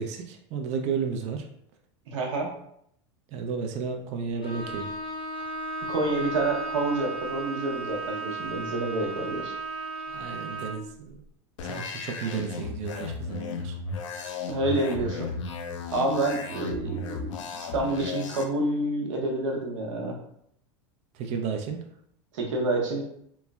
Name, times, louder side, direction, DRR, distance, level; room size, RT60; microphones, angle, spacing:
voice 1, 0.0-1.5 3.3-4.9 10.1-11.2 11.6-13.8 21.1-21.8, right 5 dB, 45° right, 4 dB, 0.4 m, -32 dB
voice 2, 2.1-2.5 5.9-9.5 14.5-15.3 15.9-20.2 22.3-23.0, right 2 dB, 75° right, 0 dB, 0.8 m, -28 dB
Bowed string instrument, 4.4-10.9, right 2 dB, 35° left, 0.6 m, -35 dB
sound 1, 11.6-18.4, left 4 dB, 75° left, 0.4 m, -35 dB
3.1 x 2.0 x 2.3 m, 0.70 s
hypercardioid pair, 100°, 16 cm